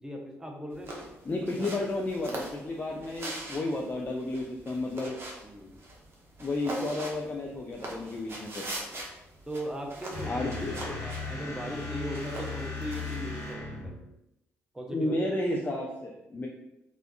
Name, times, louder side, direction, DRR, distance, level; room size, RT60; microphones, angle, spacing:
voice 1, 0.0-1.1 1.6-1.7 2.9-3.0 5.4-5.7 8.8-9.0 9.5-14.0 14.7-15.2, equal, 10° right, 1 dB, 0.7 m, -39 dB
sound 1, 0.7-13.5, right 1 dB, 35° right, 0.9 m, -42 dB
voice 2, 1.3-5.2 6.4-8.7 10.2-11.0 14.9-16.5, left 2 dB, 25° left, -1 dB, 0.5 m, -32 dB
sound 2, 10.1-14.1, left 3 dB, 50° left, 1.2 m, -37 dB
3.3 x 2.5 x 2.3 m, 0.88 s
hypercardioid pair, 45°, 7 cm